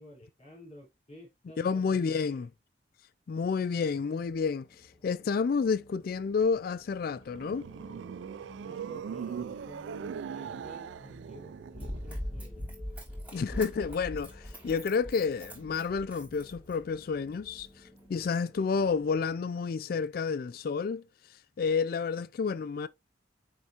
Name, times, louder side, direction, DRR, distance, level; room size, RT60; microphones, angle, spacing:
voice 1, 0.0-2.5 8.3-12.7 18.2-18.3, equal, 35° left, 4.1 m, -52 dB
voice 2, 1.6-2.5 3.3-7.7 13.3-22.9, left 5 dB, 50° left, 0.3 m, -30 dB
sound 1, 4.0-19.3, left 1 dB, 20° left, 1.5 m, -56 dB
sound 2, 7.0-12.3, right 7 dB, 75° right, 0.3 m, -40 dB
Run, 11.7-17.0 17.6-17.7, equal, 10° right, 2.8 m, -41 dB
9.5 x 3.4 x 2.9 m
head